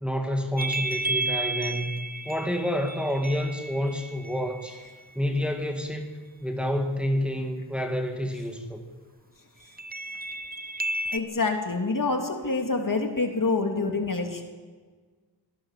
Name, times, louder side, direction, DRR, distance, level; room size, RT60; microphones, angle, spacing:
voice 1, 0.0-2.0 2.2-4.8 5.1-6.1 6.4-8.8, equal, ahead, 3 dB, 2.6 m, -28 dB
sound 1, 0.6-5.1 9.8-11.2, right 2 dB, 20° right, 0.8 m, -32 dB
voice 2, 11.1-14.4, left 3 dB, 50° left, 4 dB, 3.0 m, -26 dB
24.5 x 17.5 x 7.6 m, 1.5 s
wide cardioid pair, 80°, 41 cm